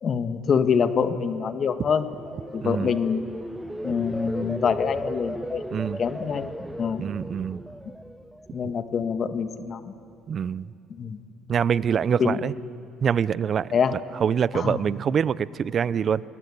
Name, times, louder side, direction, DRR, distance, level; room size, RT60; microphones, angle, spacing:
voice 1, 0.0-2.1 2.5-3.3 3.8-5.6 6.0-6.5 6.8-7.1 8.5-9.9 10.9-11.2 12.2-12.4 13.7-14.0 14.5-14.8, left 6 dB, 50° left, 9 dB, 1.5 m, -25 dB
sound 1, 1.7-8.8 9.2-9.6, equal, 5° right, 0.8 m, -36 dB
voice 2, 2.6-2.9 5.7-6.0 7.0-7.6 8.6-8.7 10.3-10.7 11.5-12.5 13.0-16.2, right 7 dB, 50° right, 19 dB, 0.6 m, -25 dB
27.0 x 20.0 x 8.6 m, 2.7 s
supercardioid pair, 70°, 0 cm